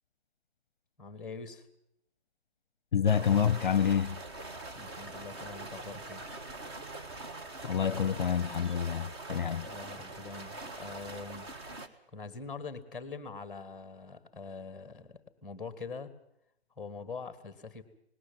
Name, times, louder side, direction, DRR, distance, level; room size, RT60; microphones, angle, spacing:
voice 1, 1.0-1.7 4.7-6.2 9.6-11.8 12.1-16.1 16.8-17.8, left 4 dB, ahead, 1.7 m, -44 dB
voice 2, 2.9-4.2 7.6-9.7, left 7 dB, 50° left, 0.7 m, -28 dB
sound 1, 3.0-11.9, right 2 dB, 25° right, 1.5 m, -43 dB
19.5 x 17.0 x 9.1 m
figure-of-eight pair, 155°, 32 cm